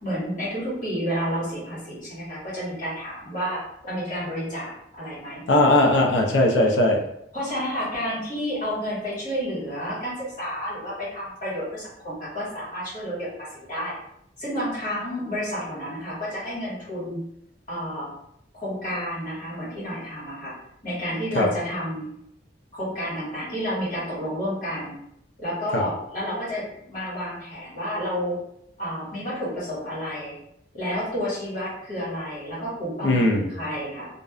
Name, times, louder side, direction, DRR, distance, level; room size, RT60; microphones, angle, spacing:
voice 1, 0.0-5.4 7.3-13.9 14.4-17.2 17.7-18.1 18.5-20.5 20.8-22.0 22.7-24.9 25.4-28.4 28.8-30.3 30.7-34.1, equal, 45° left, -9 dB, 1.5 m, -30 dB
voice 2, 5.5-7.0 21.3-21.5 25.7-25.8 33.0-33.5, left 1 dB, 85° left, 1 dB, 0.5 m, -19 dB
2.6 x 2.1 x 2.3 m, 0.76 s
head